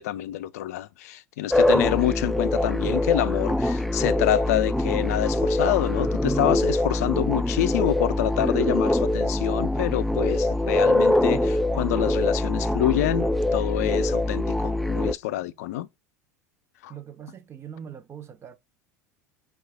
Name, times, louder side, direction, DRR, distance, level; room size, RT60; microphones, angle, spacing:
voice 1, 0.0-15.9 16.8-16.9, left 14 dB, 70° left, 0.4 m, -27 dB
sound 1, 1.5-15.1, left 1 dB, ahead, 0.3 m, -24 dB
voice 2, 16.9-18.6, right 8 dB, 30° right, 0.7 m, -41 dB
4.5 x 2.4 x 4.7 m
hypercardioid pair, 80°, 9 cm